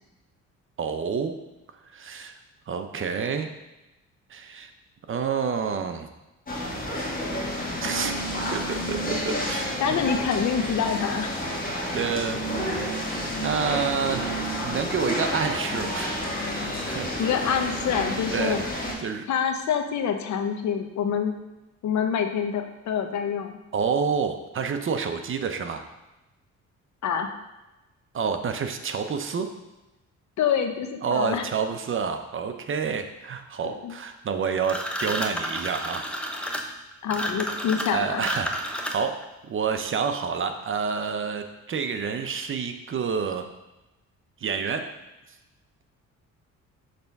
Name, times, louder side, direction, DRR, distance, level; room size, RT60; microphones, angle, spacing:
voice 1, 0.8-1.3 1.9-2.4 2.7-3.5 4.3-4.7 5.1-6.1 7.8-9.8 11.7-12.4 12.8-16.1 16.6-17.2 17.9-18.6 19.0-19.3 23.7-25.8 28.1-29.5 31.0-36.1 37.9-43.4 44.4-44.8, right 6 dB, 45° right, 7 dB, 0.7 m, -29 dB
sound 1, 6.5-18.9, equal, 30° left, 1.6 m, -30 dB
voice 2, 9.8-11.3 17.2-18.6 19.3-21.3 21.8-23.6 27.0-27.3 30.4-31.5 33.6-33.9 37.0-38.2, left 7 dB, 65° left, 6 dB, 0.8 m, -26 dB
sound 2, 34.6-39.2, equal, 5° left, 0.8 m, -31 dB
6.7 x 3.5 x 5.3 m, 1.0 s
cardioid pair, 90°, 30 cm